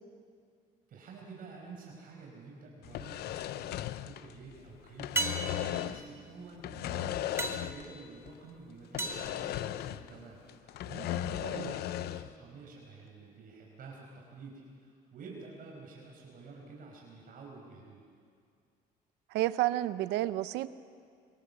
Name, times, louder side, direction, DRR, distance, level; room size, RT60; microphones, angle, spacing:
voice 1, 0.9-18.0, right 4 dB, 55° right, -1 dB, 5.0 m, -49 dB
sound 1, 2.8-4.6 4.9-6.1 6.6-8.0 8.3-8.4 8.9-10.2 10.5-12.3, left 13 dB, 70° left, 0.7 m, -37 dB
sound 2, 2.8-3.4 5.2-10.3 14.8-14.9, right 2 dB, 15° right, 1.9 m, -39 dB
voice 2, 19.3-20.7, right 15 dB, 90° right, 14 dB, 0.8 m, -30 dB
24.5 x 22.5 x 7.0 m, 2.2 s
cardioid pair, 110°, 17 cm